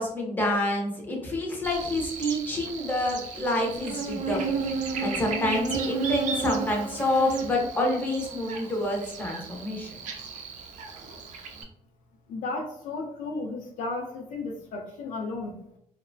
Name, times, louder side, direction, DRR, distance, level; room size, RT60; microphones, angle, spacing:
voice 1, 0.0-4.5 5.0-10.0, left 1 dB, 15° left, -1 dB, 0.5 m, -28 dB
Buzz, 1.6-11.6, right 5 dB, 70° right, 0.4 m, -33 dB
voice 2, 12.3-15.6, left 3 dB, 85° left, 1 dB, 0.5 m, -34 dB
2.9 x 2.1 x 2.5 m, 0.74 s
cardioid pair, 175°, 13 cm